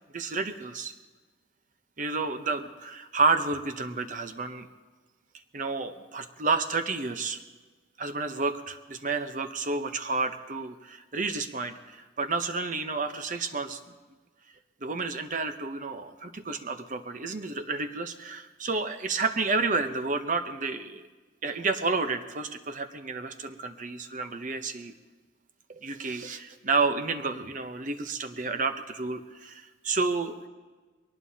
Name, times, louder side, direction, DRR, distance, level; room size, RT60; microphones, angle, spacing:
voice 1, 0.1-0.9 2.0-4.7 5.5-7.4 8.0-13.8 14.8-21.1 21.4-24.9 25.7-30.3, right 4 dB, 45° right, 8 dB, 0.8 m, -30 dB
22.5 x 19.0 x 2.8 m, 1.3 s
head